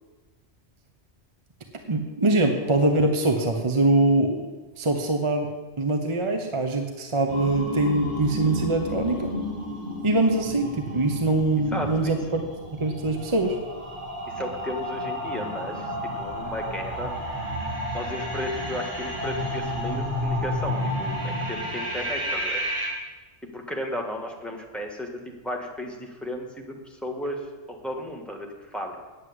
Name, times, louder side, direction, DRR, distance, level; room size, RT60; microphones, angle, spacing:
voice 1, 1.9-4.4 4.8-5.5 5.8-9.3 10.0-12.4 12.8-13.6, right 2 dB, 30° right, 4 dB, 0.9 m, -23 dB
sound 1, 7.3-22.9, equal, 50° right, 2.7 m, -31 dB
voice 2, 11.7-12.2 14.3-17.1 17.9-22.6 23.5-29.0, left 1 dB, ahead, 1 dB, 1.6 m, -34 dB
9.6 x 8.0 x 8.0 m, 1.3 s
omnidirectional pair, 1.2 m